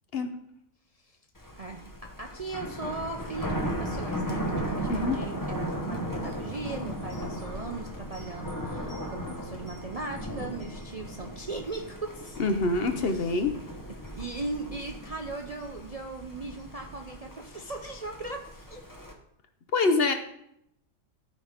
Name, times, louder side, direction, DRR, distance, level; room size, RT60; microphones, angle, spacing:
Thunder, 1.4-19.1, equal, 15° left, 0.9 m, -36 dB
voice 1, 1.6-12.4 13.0-13.4 14.1-18.8, right 3 dB, 40° right, 2 dB, 0.5 m, -38 dB
voice 2, 4.9-5.2 12.4-13.5 19.7-20.1, left 3 dB, 55° left, 7 dB, 0.9 m, -25 dB
12.5 x 4.2 x 5.0 m, 0.76 s
omnidirectional pair, 1.4 m